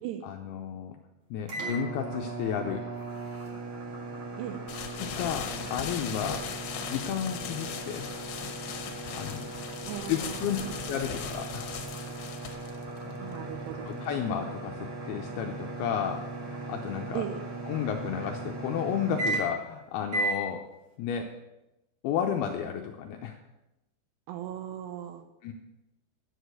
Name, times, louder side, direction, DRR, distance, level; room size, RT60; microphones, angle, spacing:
voice 1, 0.2-1.0 1.3-2.8 5.0-6.4 6.9-8.1 9.2-9.5 10.1-10.6 10.9-11.7 13.9-17.3 17.7-20.7 21.0-21.3 22.0-23.4 25.4-25.5, left 8 dB, 85° left, 3 dB, 2.2 m, -32 dB
sound 1, 1.5-19.7 20.1-20.4, right 2 dB, 55° right, 1.4 m, -37 dB
sound 2, 4.7-14.3, left 8 dB, 70° left, 2.8 m, -39 dB
voice 2, 9.9-10.7 13.2-14.1 17.1-17.4 24.3-25.3, right 11 dB, 80° right, 8 dB, 2.6 m, -37 dB
10.0 x 6.4 x 8.0 m, 0.97 s
omnidirectional pair, 5.2 m